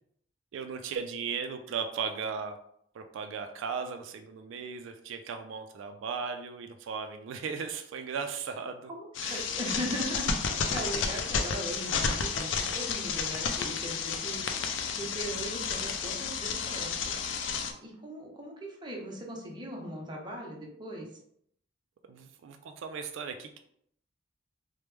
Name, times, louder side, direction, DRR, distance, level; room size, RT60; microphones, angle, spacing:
voice 1, 0.5-2.6 2.9-8.9 9.2-9.5 22.1-23.6, right 6 dB, 90° right, 6 dB, 0.3 m, -37 dB
voice 2, 8.9-10.3 10.7-17.1 17.8-21.1, equal, 25° right, -1 dB, 0.7 m, -39 dB
sound 1, 9.1-17.7, left 5 dB, 75° left, 0.4 m, -32 dB
3.1 x 2.1 x 3.3 m, 0.70 s
head